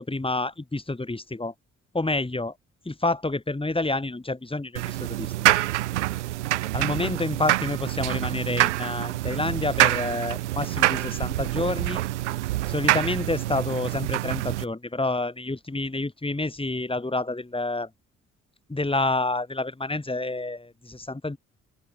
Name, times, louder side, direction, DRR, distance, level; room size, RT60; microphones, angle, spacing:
voice 1, 0.0-1.5 1.9-2.5 2.8-5.5 6.7-12.0 12.7-17.9 18.7-21.4, left 2 dB, 15° left, 6.5 m, -28 dB
sound 1, 4.8-14.6, right 16 dB, 80° right, 0.9 m, -26 dB
open air
figure-of-eight pair, 45°, 35 cm